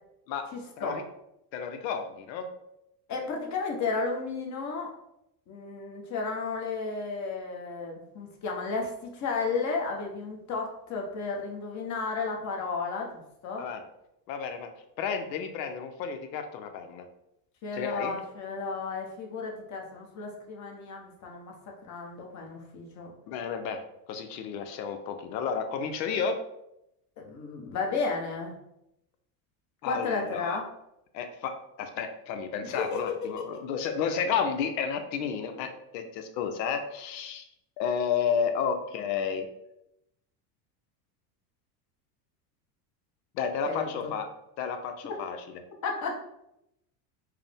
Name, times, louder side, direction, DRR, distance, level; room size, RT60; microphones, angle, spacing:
voice 1, 0.5-1.0 3.1-4.9 5.5-13.6 17.6-21.5 21.8-23.1 27.2-28.5 29.8-30.7 32.6-33.6 43.7-44.1 45.8-46.1, left 4 dB, 35° left, 0 dB, 0.9 m, -33 dB
voice 2, 1.5-2.5 13.6-13.8 14.3-14.7 15.0-17.0 17.7-18.1 23.3-23.8 24.1-26.4 29.8-30.6 31.1-37.4 37.8-39.5 43.3-44.3 44.6-45.4, left 6 dB, 85° left, 7 dB, 0.7 m, -31 dB
4.7 x 2.1 x 3.4 m, 0.83 s
supercardioid pair, 115°, 49 cm